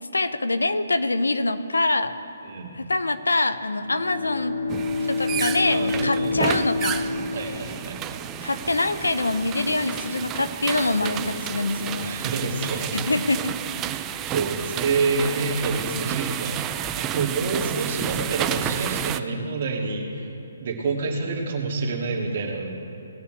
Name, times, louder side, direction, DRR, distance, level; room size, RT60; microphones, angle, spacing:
voice 1, 0.1-2.2 2.7-4.6 5.1-7.1 8.4-12.2 12.9-13.5, left 2 dB, 85° left, 11 dB, 0.7 m, -25 dB
voice 2, 2.4-2.8 5.7-6.7 7.3-8.2 11.0-11.3 12.0-13.2 14.3-20.3 20.6-22.7, right 3 dB, 50° right, 0 dB, 2.1 m, -28 dB
Bowed string instrument, 3.7-8.4, left 3 dB, 60° left, 2.3 m, -28 dB
sound 1, 4.7-19.2, right 11 dB, 20° right, 0.4 m, -31 dB
19.0 x 6.9 x 4.6 m, 3.0 s
figure-of-eight pair, 140°, 0 cm